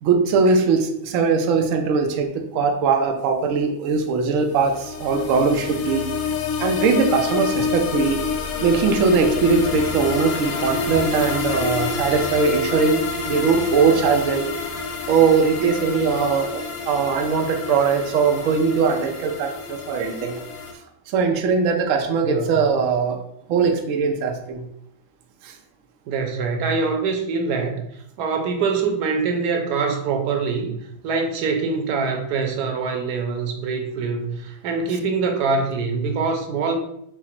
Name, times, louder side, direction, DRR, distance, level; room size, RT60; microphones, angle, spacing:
voice 1, 0.0-6.1 6.6-8.2 8.6-14.5 15.1-20.4 21.1-23.2 23.5-24.6 25.4-25.5, right 5 dB, 85° right, 4 dB, 0.7 m, -20 dB
sound 1, 4.5-20.7, left 5 dB, 70° left, 0.9 m, -28 dB
voice 2, 22.2-22.6 26.1-27.8 28.2-36.8, right 4 dB, 65° right, 4 dB, 1.1 m, -24 dB
4.7 x 2.0 x 4.3 m, 0.75 s
omnidirectional pair, 2.0 m